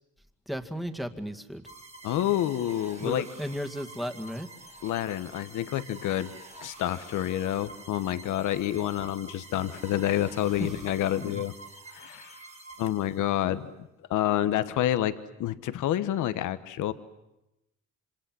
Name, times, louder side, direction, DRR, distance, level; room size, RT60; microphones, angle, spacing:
voice 1, 0.5-1.6 3.0-4.5 10.6-10.8 11.0-11.4, equal, ahead, 5 dB, 2.1 m, -35 dB
sound 1, 1.6-13.5, right 2 dB, 20° right, 3.0 m, -48 dB
voice 2, 2.0-3.3 4.8-6.3 6.6-11.5 11.9-12.4 12.8-13.7 14.1-15.1 15.4-16.9, left 12 dB, 85° left, 12 dB, 1.2 m, -28 dB
28.0 x 26.0 x 7.7 m, 0.90 s
cardioid pair, 90°, 30 cm